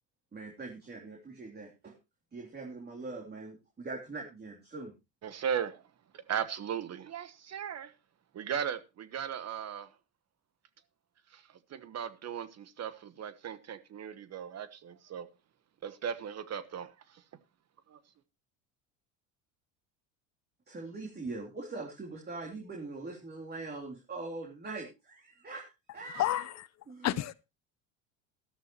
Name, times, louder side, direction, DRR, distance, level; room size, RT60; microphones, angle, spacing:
voice 1, 0.3-1.9 2.3-4.9 20.7-26.4 26.9-27.2, right 3 dB, 25° right, 3.3 m, -42 dB
voice 2, 5.2-5.8 6.1-7.9 8.3-9.9 11.3-15.3 15.8-17.2 17.9-18.0, right 8 dB, 40° right, 1.2 m, -37 dB
voice 3, 26.1-26.7 27.0-27.3, left 14 dB, 45° left, 0.6 m, -30 dB
13.0 x 12.5 x 3.0 m
supercardioid pair, 95°, 39 cm